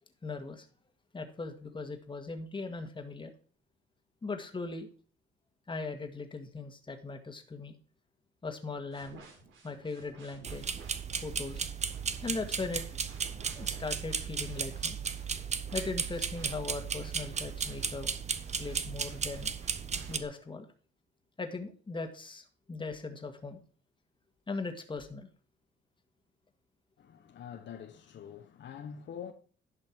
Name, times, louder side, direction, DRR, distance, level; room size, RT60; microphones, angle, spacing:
voice 1, 0.2-0.7 1.1-3.3 4.2-4.9 5.7-7.8 8.4-9.2 9.6-10.6 11.2-11.6 12.2-12.8 13.6-15.0 15.7-18.1 18.6-19.5 20.1-20.7 21.4-23.6 24.5-25.3, left 3 dB, 25° left, 1.9 m, -39 dB
sound 1, 8.9-20.2, right 3 dB, 85° right, 3.4 m, -55 dB
sound 2, 10.4-20.2, right 6 dB, 35° right, 0.9 m, -35 dB
voice 2, 27.0-29.3, left 8 dB, 65° left, 1.2 m, -45 dB
11.0 x 5.9 x 4.6 m
cardioid pair, 90°, 20 cm